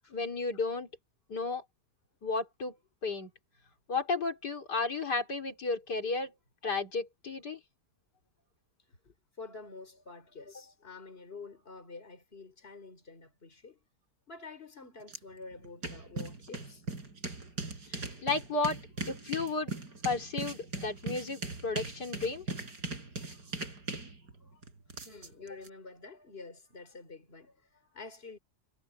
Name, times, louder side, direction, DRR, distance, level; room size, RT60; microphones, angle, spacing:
voice 1, 0.1-0.9 1.3-1.6 2.2-2.7 3.0-3.3 3.9-6.3 6.6-7.6 17.9-18.8 19.1-19.8 20.0-22.5, left 3 dB, 75° left, 3.9 m, -33 dB
voice 2, 9.0-13.8 14.3-16.8 23.2-23.5 24.4-24.6 24.9-28.4, left 4 dB, 35° left, 3.9 m, -48 dB
sound 1, 15.1-15.2 15.5-25.7, right 3 dB, 75° right, 4.4 m, -40 dB
omnidirectional pair, 1.8 m